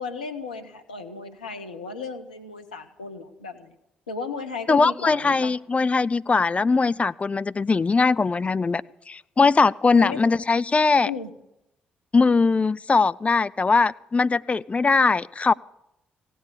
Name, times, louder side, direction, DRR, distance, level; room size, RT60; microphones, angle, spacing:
voice 1, 0.0-3.7 4.1-5.5 9.9-10.2 11.0-11.3, left 5 dB, 85° left, 6 dB, 0.9 m, -34 dB
voice 2, 4.7-8.8 9.1-11.1 12.1-15.5, left 4 dB, 30° left, 18 dB, 0.4 m, -20 dB
16.5 x 8.5 x 8.4 m, 0.85 s
figure-of-eight pair, 40°, 4 cm